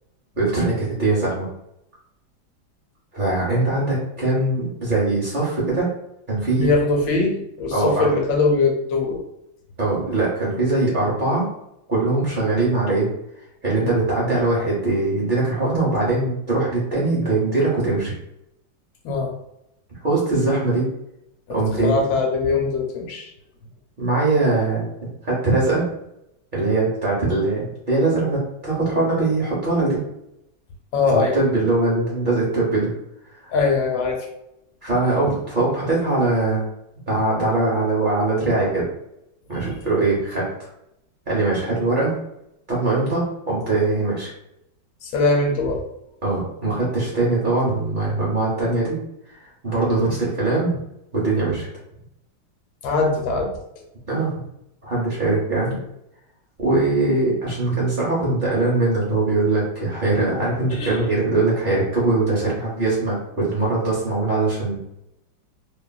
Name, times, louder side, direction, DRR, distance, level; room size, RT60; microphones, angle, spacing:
voice 1, 0.4-1.5 3.1-5.9 6.3-6.7 7.7-8.1 9.8-11.5 11.9-13.1 13.6-18.1 20.0-20.9 21.5-22.0 24.0-24.8 25.2-25.8 26.5-30.0 31.1-32.9 33.4-33.5 34.8-36.6 37.1-38.9 39.5-40.5 41.3-42.1 42.7-44.3 46.2-49.0 49.3-50.8 51.1-51.7 54.1-54.3 54.8-55.8 56.6-64.9, right 2 dB, 65° right, -6 dB, 0.5 m, -21 dB
voice 2, 6.5-9.2 19.0-19.3 21.5-21.6 21.8-23.3 30.9-31.4 33.5-34.3 45.0-45.8 52.8-53.5 60.7-61.0, left 3 dB, 75° left, 2 dB, 1.3 m, -21 dB
3.1 x 2.4 x 2.2 m, 0.81 s
omnidirectional pair, 2.1 m